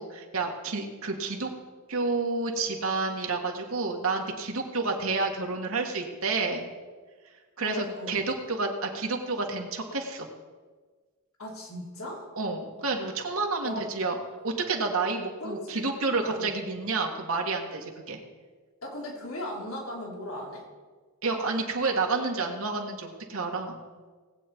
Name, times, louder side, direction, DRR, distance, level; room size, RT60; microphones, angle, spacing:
voice 1, 0.0-1.5 1.9-6.7 7.6-10.3 12.4-14.2 14.4-18.2 21.2-23.8, right 3 dB, 75° right, 2 dB, 1.7 m, -30 dB
voice 2, 7.6-8.2 11.4-12.3 13.6-13.9 15.4-16.5 18.8-20.6, left 1 dB, 80° left, -1 dB, 3.0 m, -38 dB
18.5 x 8.3 x 4.5 m, 1.4 s
head